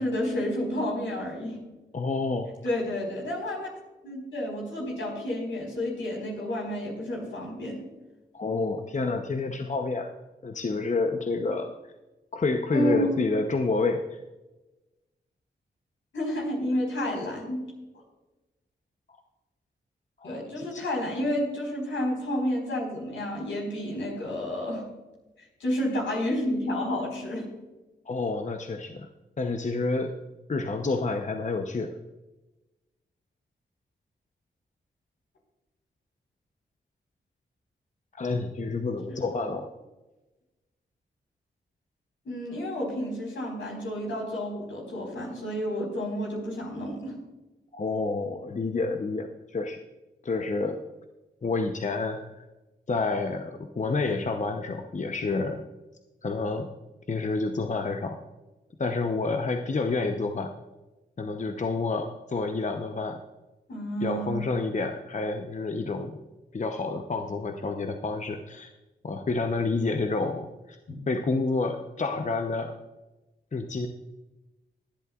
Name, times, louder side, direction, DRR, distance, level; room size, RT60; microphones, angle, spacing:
voice 1, 0.0-1.6 2.6-3.7 4.0-7.8 12.7-13.2 16.1-17.6 20.2-24.8 25.4-27.5 39.1-39.2 42.2-47.2 63.7-64.4 70.9-71.0, equal, 85° left, -1 dB, 4.6 m, -30 dB
voice 2, 1.9-2.5 8.3-10.1 10.4-11.7 12.3-14.2 20.2-20.8 28.1-29.1 29.4-30.2 30.5-32.0 38.2-39.7 47.7-49.8 50.2-50.8 51.4-52.4 52.9-55.6 56.2-56.7 57.1-58.2 58.8-60.5 61.2-63.2 64.0-66.2 66.5-68.7 69.0-70.8 71.1-72.7 73.5-73.9, left 3 dB, 40° left, 5 dB, 0.9 m, -29 dB
23.5 x 8.3 x 2.4 m, 1.1 s
cardioid pair, 50°, 19 cm